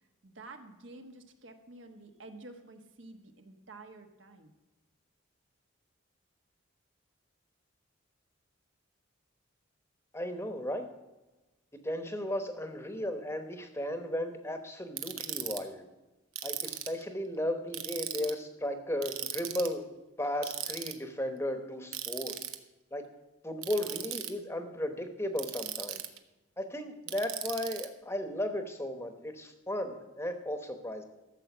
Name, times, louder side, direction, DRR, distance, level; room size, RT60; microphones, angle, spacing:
voice 1, 0.2-4.5, right 2 dB, 60° right, 5 dB, 1.2 m, -50 dB
voice 2, 10.1-10.9 11.8-15.8 16.4-19.9 20.2-22.4 22.9-23.0 23.4-26.0 26.6-31.0, left 1 dB, 10° left, 6 dB, 1.0 m, -35 dB
Ratchet pawl, 15.0-15.6 16.4-17.0 17.7-18.3 19.0-19.7 20.4-20.9 21.9-22.6 23.6-24.3 25.4-26.2 27.1-27.9, right 12 dB, 85° right, 1.0 m, -37 dB
13.5 x 7.5 x 6.0 m, 1.1 s
head